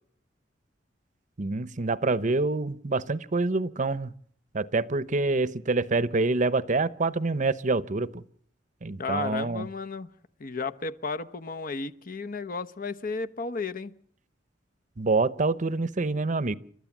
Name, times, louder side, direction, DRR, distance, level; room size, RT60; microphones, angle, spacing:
voice 1, 1.4-4.1 4.5-8.2 8.8-9.7 15.0-16.6, right 3 dB, 45° right, 17 dB, 0.8 m, -26 dB
voice 2, 9.0-10.1 10.4-13.9, left 4 dB, 50° left, 10 dB, 0.9 m, -33 dB
30.0 x 13.0 x 7.3 m, 0.62 s
head